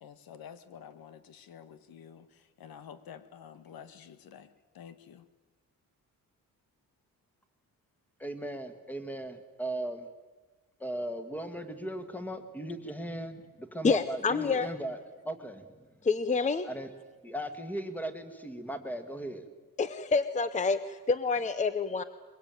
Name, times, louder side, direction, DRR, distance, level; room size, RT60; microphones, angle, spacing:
voice 1, 0.0-5.3, left 8 dB, 90° left, 12 dB, 1.7 m, -50 dB
voice 2, 8.2-10.1 10.8-15.0 15.2-15.9 16.6-16.9 17.2-19.5, right 1 dB, 5° left, 9 dB, 1.8 m, -37 dB
voice 3, 13.8-14.7 16.0-16.7 19.8-22.0, left 4 dB, 20° left, 13 dB, 0.7 m, -28 dB
23.0 x 22.0 x 9.1 m, 1.3 s
wide cardioid pair, 180°, 35 cm